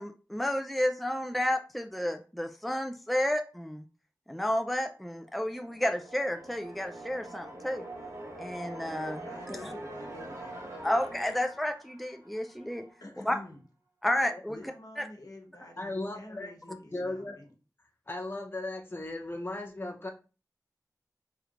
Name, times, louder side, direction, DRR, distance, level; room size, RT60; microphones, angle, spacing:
voice 1, 0.0-3.8 4.3-7.8 8.4-9.7 10.8-12.9 13.3-13.4 14.0-14.6 15.0-15.1, left 1 dB, ahead, 6 dB, 0.4 m, -31 dB
sound 1, 5.2-13.0, right 1 dB, 45° right, 1.4 m, -44 dB
voice 2, 9.2-10.7 13.0-13.6 14.5-17.5, left 2 dB, 65° left, 2 dB, 1.1 m, -48 dB
voice 3, 15.8-17.4 18.1-20.1, left 2 dB, 35° left, 2 dB, 0.7 m, -37 dB
4.6 x 3.2 x 2.4 m, 0.35 s
wide cardioid pair, 50°, 7 cm